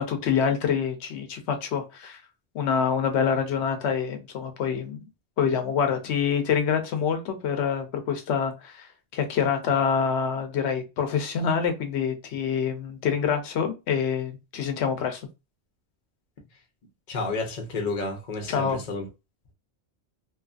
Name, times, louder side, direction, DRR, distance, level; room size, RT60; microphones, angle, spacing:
voice 1, 0.0-2.2 2.5-5.0 5.4-15.2 18.5-18.8, left 7 dB, 90° left, 0.9 m, -26 dB
voice 2, 17.1-19.1, left 3 dB, 50° left, 0.8 m, -30 dB
2.7 x 2.4 x 2.3 m
omnidirectional pair, 1.1 m